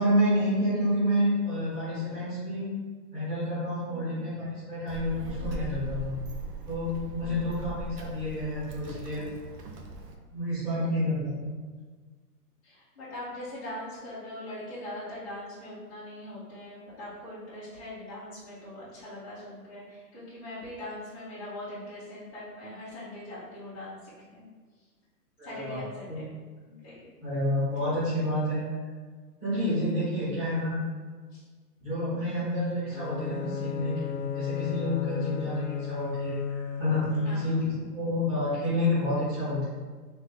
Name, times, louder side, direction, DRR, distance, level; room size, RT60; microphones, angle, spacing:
voice 1, 0.0-2.7 3.1-6.1 6.7-9.3 10.3-11.3 25.4-25.8 26.1-26.2 27.2-28.6 29.4-30.8 31.8-39.7, left 1 dB, 10° right, -12 dB, 1.4 m, -29 dB
voice 2, 3.9-4.3 7.1-7.9 10.7-11.1 12.6-24.5 25.4-26.3 26.6-27.2 27.6-28.0 31.3-31.4 32.2-32.5 35.2-35.6 37.2-37.7, left 1 dB, 20° left, -13 dB, 0.8 m, -42 dB
Child speech kid speaking, 4.9-10.1, right 1 dB, 75° right, 0.8 m, -39 dB
Bowed string instrument, 32.9-37.7, left 9 dB, 80° left, 0.5 m, -34 dB
3.5 x 2.9 x 3.8 m, 1.4 s
hypercardioid pair, 175°, 49 cm